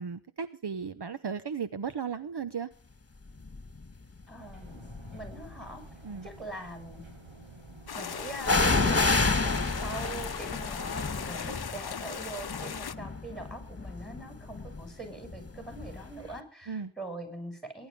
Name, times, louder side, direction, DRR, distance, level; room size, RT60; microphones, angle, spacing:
voice 1, 0.0-2.7 6.0-6.3 16.7-16.9, right 6 dB, 55° right, 12 dB, 1.0 m, -35 dB
sound 1, 3.5-3.8 4.6-5.5 8.4-16.1 16.3-16.4, left 3 dB, 30° left, 1.9 m, -30 dB
voice 2, 4.3-4.8 5.1-5.8 6.2-7.0 7.9-9.5 9.8-17.9, right 1 dB, ahead, 7 dB, 7.3 m, -43 dB
sound 2, 4.4-10.0, right 2 dB, 75° right, 5.5 m, -51 dB
sound 3, 7.9-12.9, left 7 dB, 50° left, 0.8 m, -38 dB
21.0 x 11.0 x 5.4 m, 0.39 s
cardioid pair, 40°, 47 cm